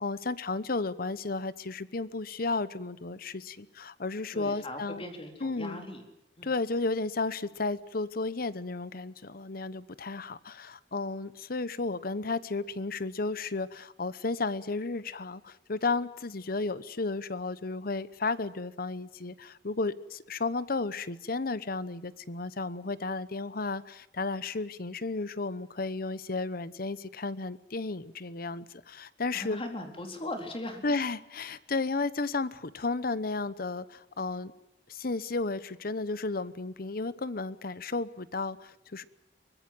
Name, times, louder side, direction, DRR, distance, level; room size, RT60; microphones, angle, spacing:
voice 1, 0.0-5.0 5.4-5.8 6.4-29.6 30.8-34.5 34.9-39.0, left 3 dB, 55° left, 16 dB, 1.0 m, -33 dB
voice 2, 4.3-6.0 6.4-6.5 29.3-30.8, left 1 dB, 30° left, 4 dB, 4.1 m, -39 dB
24.0 x 20.0 x 7.7 m, 0.87 s
head